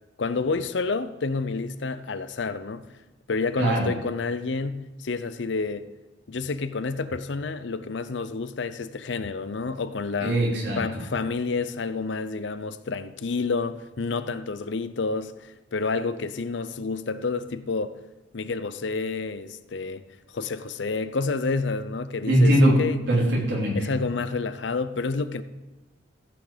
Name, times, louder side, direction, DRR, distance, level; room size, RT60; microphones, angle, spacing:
voice 1, 0.2-2.9 3.3-5.9 6.3-10.4 10.8-18.0 18.3-20.0 20.3-23.0 23.7-25.4, left 4 dB, 70° left, 0.6 m, -29 dB
voice 2, 10.2-10.8 22.2-22.8 23.1-23.8, right 1 dB, 65° right, 3.8 m, -21 dB
15.0 x 5.9 x 5.0 m
head